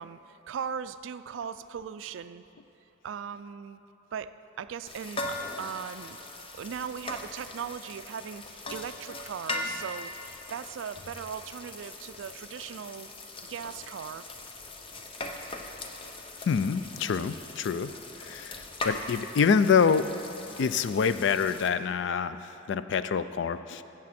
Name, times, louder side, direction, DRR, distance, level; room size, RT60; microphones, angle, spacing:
voice 1, 0.0-2.4 3.0-3.8 4.1-6.2 6.5-14.3 16.0-16.1, right 7 dB, 70° right, 13 dB, 0.3 m, -39 dB
sound 1, 4.9-21.7, left 2 dB, 25° left, 0.6 m, -40 dB
voice 2, 16.5-17.9 18.2-20.1 20.6-22.4 22.7-23.8, left 6 dB, 60° left, 13 dB, 0.3 m, -26 dB
14.5 x 7.5 x 4.3 m, 3.0 s
head